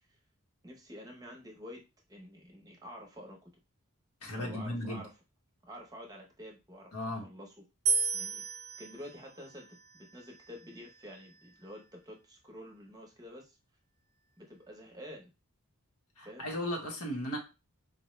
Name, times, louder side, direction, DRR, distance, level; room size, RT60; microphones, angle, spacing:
voice 1, 0.6-1.8 2.1-3.5 4.3-5.1 5.6-7.5 8.1-8.4 8.8-13.6 14.4-15.3 16.2-16.5, equal, 15° right, 0.7 m, -49 dB
voice 2, 4.2-5.1 6.9-7.3 16.2-17.4, left 1 dB, 85° left, 1.1 m, -36 dB
sound 1, 7.9-11.1, right 5 dB, 70° right, 0.5 m, -35 dB
4.3 x 2.1 x 3.1 m
head